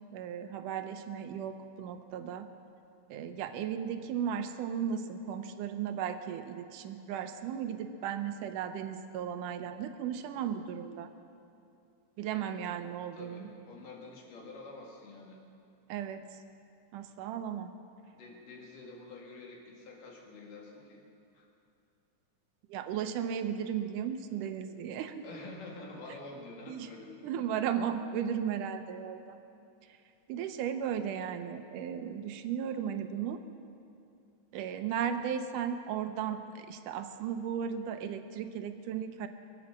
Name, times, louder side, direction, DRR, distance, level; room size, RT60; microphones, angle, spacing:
voice 1, 0.1-2.5 3.1-11.1 12.2-13.5 15.9-16.3 16.9-17.7 22.7-25.2 26.7-26.9 27.2-29.4 30.3-33.4 34.5-39.3, right 8 dB, 85° right, 8 dB, 2.3 m, -35 dB
voice 2, 13.1-15.4 18.1-21.0 21.3-21.5 25.2-27.5, left 3 dB, 90° left, -1 dB, 3.8 m, -48 dB
23.0 x 8.6 x 7.3 m, 2.7 s
omnidirectional pair, 3.7 m